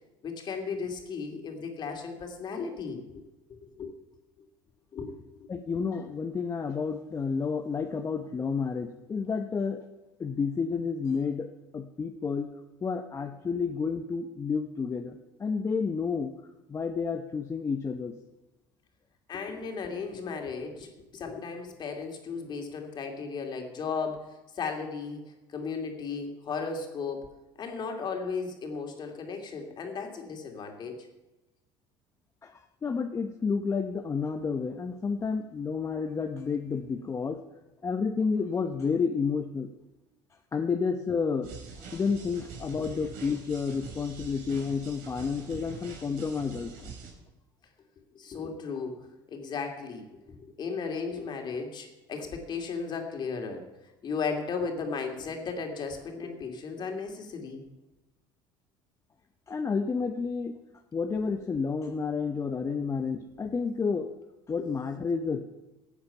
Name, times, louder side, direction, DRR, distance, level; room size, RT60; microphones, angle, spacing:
voice 1, 0.2-3.2 3.5-3.9 4.9-5.5 19.3-27.3 27.6-31.1 48.1-53.7 54.0-57.6, left 5 dB, 45° left, 3 dB, 2.6 m, -35 dB
voice 2, 5.5-9.8 10.2-12.5 12.8-16.3 16.7-18.1 32.4-37.4 37.8-39.7 40.5-41.5 41.8-46.9 59.5-60.6 60.9-64.1 64.5-65.4, left 5 dB, 25° left, 5 dB, 0.9 m, -30 dB
sound 1, 41.4-47.1, right 5 dB, 90° right, 3.4 m, -45 dB
15.5 x 8.8 x 5.8 m, 1.0 s
supercardioid pair, 100°, 11 cm